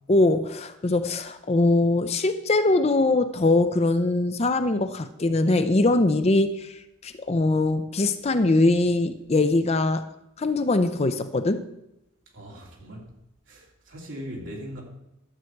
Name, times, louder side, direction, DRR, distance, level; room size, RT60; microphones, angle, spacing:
voice 1, 0.1-10.0 10.4-11.7, left 2 dB, 30° left, 0.5 m, -22 dB
voice 2, 12.3-13.0 13.5-14.8, equal, 60° right, 3.2 m, -39 dB
12.5 x 7.6 x 4.6 m
head